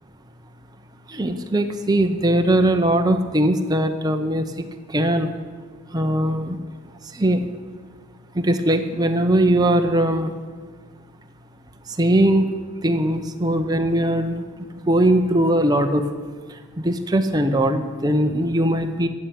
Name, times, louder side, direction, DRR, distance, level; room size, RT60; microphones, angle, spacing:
voice 1, 1.1-4.4 4.9-5.3 5.9-6.6 7.2-7.4 8.4-10.3 12.0-12.6 12.8-14.4 14.9-16.0 16.8-19.1, right 1 dB, 15° right, 5 dB, 0.8 m, -20 dB
14.5 x 6.9 x 9.0 m, 1.5 s
head